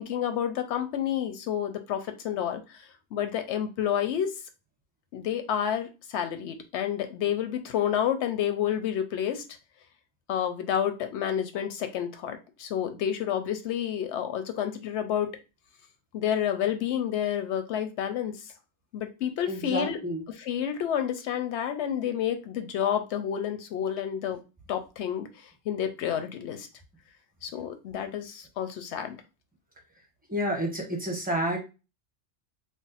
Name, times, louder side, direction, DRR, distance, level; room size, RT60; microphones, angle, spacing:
voice 1, 0.0-2.6 3.1-4.3 5.1-9.4 10.3-15.3 16.1-18.3 18.9-20.0 20.4-24.4 24.7-25.3 25.7-26.7 27.4-29.2, left 9 dB, 80° left, 7 dB, 0.9 m, -29 dB
voice 2, 19.4-20.2 30.3-31.6, right 1 dB, 10° right, 0 dB, 0.8 m, -29 dB
2.5 x 2.2 x 4.0 m, 0.29 s
omnidirectional pair, 1.1 m